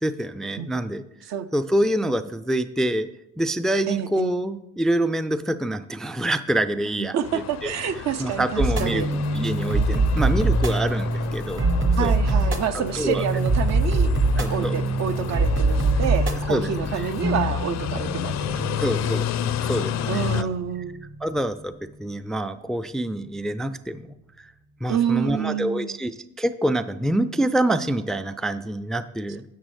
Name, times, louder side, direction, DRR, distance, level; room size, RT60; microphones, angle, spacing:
voice 1, 0.0-1.0 1.5-3.1 3.4-7.7 8.2-11.6 12.0-12.1 13.0-13.2 14.1-14.9 16.5-17.1 18.8-20.5 21.2-21.7 22.0-24.1 24.4-24.5 24.8-29.4, right 1 dB, ahead, 11 dB, 0.3 m, -26 dB
voice 2, 3.9-4.3 7.0-9.1 12.0-14.1 14.5-19.2 20.1-21.0 24.9-26.0, right 8 dB, 60° right, 11 dB, 0.6 m, -28 dB
sound 1, 7.2-20.4, left 10 dB, 60° left, 0.5 m, -31 dB
sound 2, 8.6-21.2, right 2 dB, 40° right, 1.1 m, -24 dB
10.5 x 7.2 x 3.2 m, 0.87 s
cardioid pair, 90°, 30 cm